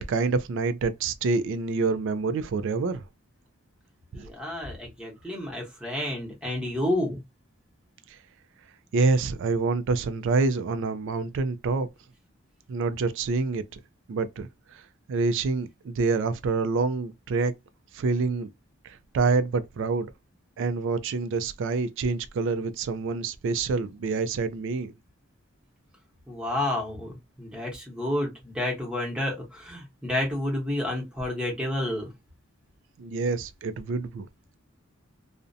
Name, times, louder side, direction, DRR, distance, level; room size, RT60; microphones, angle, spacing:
voice 1, 0.0-3.0 4.1-4.3 8.9-11.9 12.7-13.8 14.1-14.8 15.1-17.5 17.9-18.5 18.8-20.1 20.6-24.9 33.0-34.3, right 4 dB, 65° right, 0.3 m, -27 dB
voice 2, 4.1-7.2 26.3-32.1, left 1 dB, 5° right, 0.9 m, -30 dB
2.5 x 2.1 x 2.5 m
head